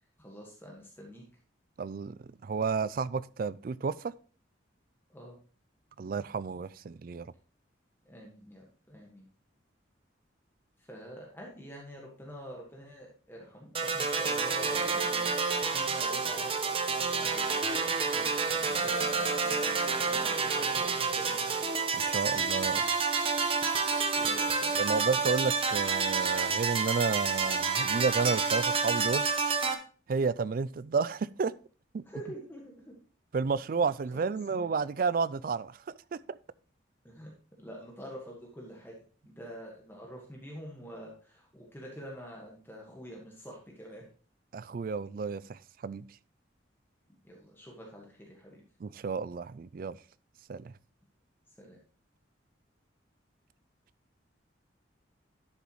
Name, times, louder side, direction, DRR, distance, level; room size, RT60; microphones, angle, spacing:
voice 1, 0.2-1.2 5.1-5.4 8.0-9.2 10.8-16.8 17.1-17.6 18.1-21.5 24.1-25.1 32.0-32.9 34.1-34.7 37.0-37.3 37.6-38.9 39.2-44.0 47.2-48.6 51.6-51.8, equal, 10° left, 1.6 m, -46 dB
voice 2, 1.8-4.1 6.0-7.3 21.9-23.2 24.7-29.3 30.1-31.5 31.9-32.0 33.3-35.8 36.1-36.4 44.5-46.0 48.8-50.0 50.5-50.7, right 5 dB, 45° right, 0.3 m, -31 dB
sound 1, 13.7-29.7, right 5 dB, 30° right, 0.9 m, -29 dB
11.5 x 6.9 x 3.1 m
head